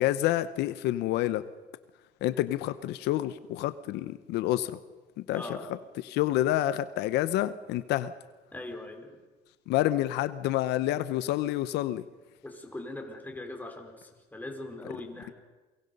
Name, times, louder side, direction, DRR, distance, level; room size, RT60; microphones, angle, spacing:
voice 1, 0.0-1.4 2.2-4.8 5.3-5.4 6.0-8.1 9.7-12.0, left 14 dB, 85° left, 13 dB, 0.9 m, -28 dB
voice 2, 5.3-5.8 8.5-9.2 12.4-15.3, left 1 dB, 10° left, 3 dB, 4.4 m, -41 dB
29.0 x 23.0 x 5.4 m, 1.2 s
cardioid pair, 110°, 17 cm